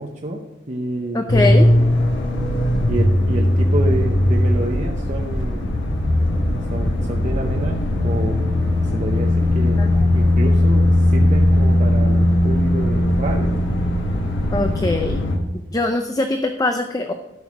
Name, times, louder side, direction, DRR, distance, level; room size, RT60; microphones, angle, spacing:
voice 1, 0.0-1.9 2.9-5.7 6.7-8.4 8.8-9.8 10.1-13.5, right 1 dB, 40° right, 1 dB, 0.8 m, -28 dB
voice 2, 1.1-1.7 9.8-10.0 14.5-15.2 15.5-17.1, left 2 dB, 20° left, 6 dB, 0.5 m, -22 dB
sound 1, 1.3-15.4, left 1 dB, 75° left, 1.4 m, -18 dB
12.5 x 6.3 x 4.8 m, 1.0 s
head